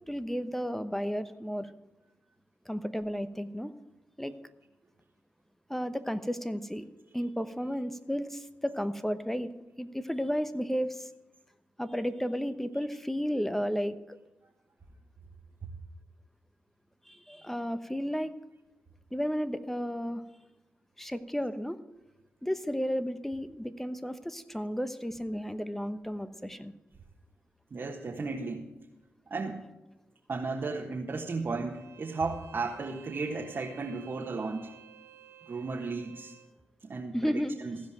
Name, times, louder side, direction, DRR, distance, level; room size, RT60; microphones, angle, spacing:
voice 1, 0.1-1.7 2.7-3.7 4.2-4.3 5.7-6.9 7.1-9.5 9.8-11.1 11.8-14.2 17.1-18.3 19.1-20.2 21.0-21.8 22.4-26.7 37.1-37.6, equal, 5° left, 12 dB, 1.0 m, -33 dB
voice 2, 27.7-28.7 29.3-29.6 30.3-34.7 35.5-36.3 36.8-37.8, right 3 dB, 55° right, -1 dB, 1.4 m, -35 dB
Bowed string instrument, 31.7-36.5, right 7 dB, 75° right, 1.4 m, -54 dB
15.5 x 5.2 x 8.9 m, 1.0 s
supercardioid pair, 40°, 5 cm